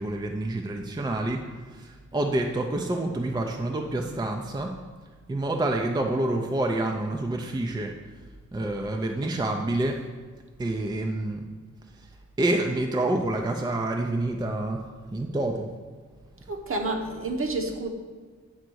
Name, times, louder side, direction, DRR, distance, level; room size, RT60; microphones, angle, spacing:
voice 1, 0.0-4.7 5.3-10.0 10.6-11.5 11.8-14.9 15.1-15.7 16.4-16.5, right 2 dB, 15° right, 2 dB, 0.5 m, -28 dB
voice 2, 16.5-17.9, right 2 dB, 45° right, 3 dB, 1.0 m, -29 dB
8.9 x 3.9 x 6.2 m, 1.5 s
wide cardioid pair, 155°, 30 cm